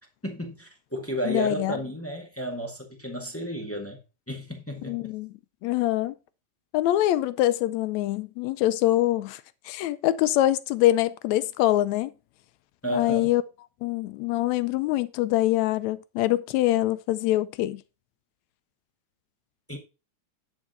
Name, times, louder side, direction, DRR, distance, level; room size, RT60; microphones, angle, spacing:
voice 1, 0.2-4.0 4.3-5.1 12.8-13.3 19.7-19.8, equal, 10° left, 0.7 m, -32 dB
voice 2, 1.2-1.8 4.8-5.3 5.6-6.1 6.7-9.4 9.7-12.1 12.9-13.4 13.8-17.8, left 14 dB, 80° left, 1.8 m, -24 dB
10.5 x 4.8 x 5.6 m
omnidirectional pair, 3.4 m